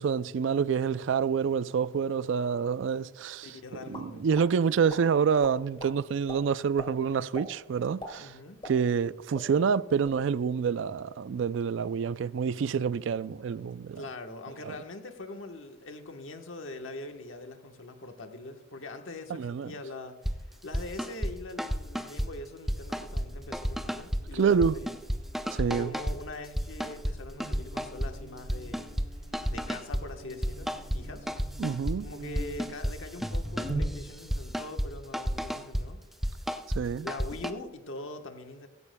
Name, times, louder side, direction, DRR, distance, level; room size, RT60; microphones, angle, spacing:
voice 1, 0.0-3.5 3.9-8.3 8.6-14.0 14.6-14.7 19.3-19.7 24.3-24.8 25.5-25.9 31.6-32.1 36.7-37.1, right 6 dB, 75° right, 0.3 m, -27 dB
voice 2, 3.4-4.3 8.2-8.6 14.0-20.2 20.6-25.0 25.7-28.9 29.5-31.3 32.0-36.0 37.0-38.7, left 2 dB, 90° left, 1.2 m, -42 dB
sound 1, 3.9-4.5 4.9-5.0 5.4-5.9 6.3-6.4 6.8-6.9 7.3-7.5 7.8-9.1 9.3-9.5 9.9-10.2, left 1 dB, 25° left, 2.2 m, -41 dB
sound 2, 20.2-20.4 20.7-21.3 21.6-22.3 22.7-23.3 23.5-24.2 24.6-26.2 26.6-27.2 27.4-28.1 28.4-29.1 29.3-30.0 30.4-31.0 31.3-32.0 32.3-33.0 33.2-34.9 35.1-35.8 36.2-36.8 37.1-37.5, equal, ahead, 0.5 m, -31 dB
Buzz, 23.0-34.4, right 2 dB, 45° right, 4.1 m, -44 dB
16.5 x 15.5 x 2.2 m
head